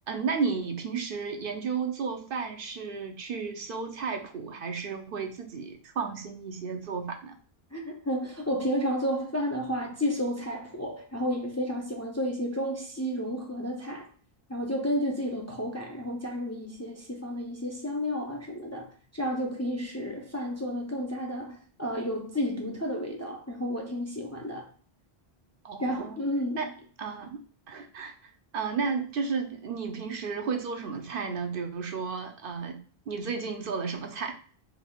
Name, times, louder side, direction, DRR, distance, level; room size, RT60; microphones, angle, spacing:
voice 1, 0.1-7.4 25.6-26.2 26.5-26.7 27.0-27.4 27.7-28.1 28.5-32.8 33.1-34.3, right 5 dB, 65° right, 0.7 m, -33 dB
voice 2, 7.7-14.1 14.5-24.7 25.8-26.7, equal, 20° left, 0.5 m, -31 dB
4.9 x 3.4 x 2.3 m
omnidirectional pair, 1.1 m